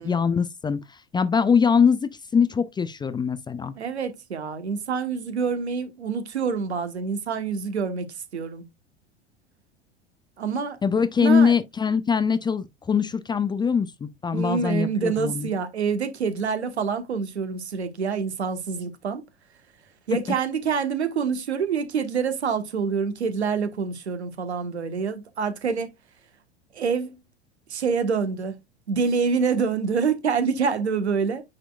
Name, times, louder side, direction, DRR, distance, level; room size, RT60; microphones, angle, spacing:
voice 1, 0.0-3.7 10.8-15.5, left 6 dB, 15° left, 0.5 m, -22 dB
voice 2, 3.8-8.1 8.3-8.6 10.4-10.8 11.2-11.5 14.3-19.2 20.1-25.9 26.7-27.2 27.7-28.6 28.9-31.4, right 5 dB, 75° right, 1.4 m, -26 dB
9.3 x 4.4 x 2.4 m
figure-of-eight pair, 85°, 33 cm